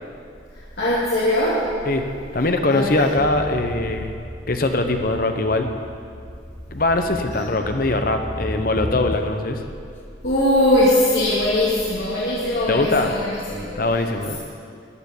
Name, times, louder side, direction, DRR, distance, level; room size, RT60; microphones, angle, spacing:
voice 1, 0.8-1.6 2.7-3.0 10.2-13.7, left 1 dB, 65° left, -9 dB, 2.5 m, -20 dB
voice 2, 2.3-4.1 4.5-5.7 6.7-9.6 12.7-13.2 13.7-14.4, left 2 dB, 50° left, 6 dB, 1.0 m, -21 dB
sound 1, 3.2-9.5, left 1 dB, 10° left, 1.0 m, -34 dB
14.0 x 7.0 x 9.9 m, 2.3 s
head